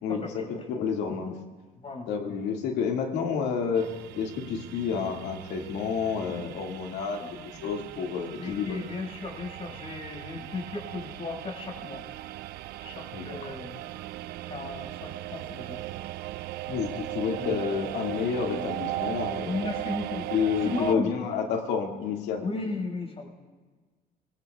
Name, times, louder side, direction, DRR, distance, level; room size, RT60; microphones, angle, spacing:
voice 1, 0.0-1.3 2.1-3.9 4.2-7.2 7.6-8.9 13.1-13.5 16.7-19.5 20.3-22.4, left 6 dB, 90° left, 1 dB, 2.1 m, -30 dB
voice 2, 1.8-2.4 7.2-12.0 12.8-13.8 14.5-15.8 17.2-17.6 19.4-20.3 20.7-21.1 22.4-23.3, left 3 dB, 35° left, 1 dB, 5.6 m, -36 dB
sound 1, 3.8-21.0, right 16 dB, 70° right, 0.4 m, -38 dB
24.0 x 22.0 x 2.4 m, 1.3 s
cardioid pair, 110°, 17 cm